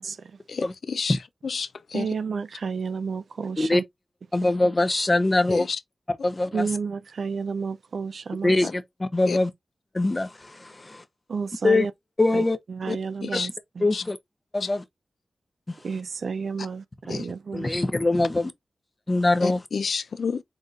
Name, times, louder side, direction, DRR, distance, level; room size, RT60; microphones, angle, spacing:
voice 1, 0.5-1.2 1.4-2.1 5.5-5.8 8.6-8.7 9.3-9.4 13.2-13.5 13.9-14.0 14.6-14.7 17.1-17.3 19.4-20.4, left 5 dB, 80° left, 0.4 m, -30 dB
voice 2, 1.9-3.8 6.5-8.6 11.3-11.9 12.3-13.9 15.8-17.8, right 5 dB, 75° right, 0.4 m, -31 dB
voice 3, 4.3-5.7 6.2-6.7 8.4-9.5 9.9-11.0 11.6-11.9 12.2-12.6 12.9-13.0 13.3-13.4 13.8-14.2 14.5-14.8 15.7-15.8 17.1-17.2 17.5-18.5 19.1-19.6, left 2 dB, 30° left, 0.7 m, -23 dB
4.1 x 3.7 x 2.4 m
cardioid pair, 55°, 0 cm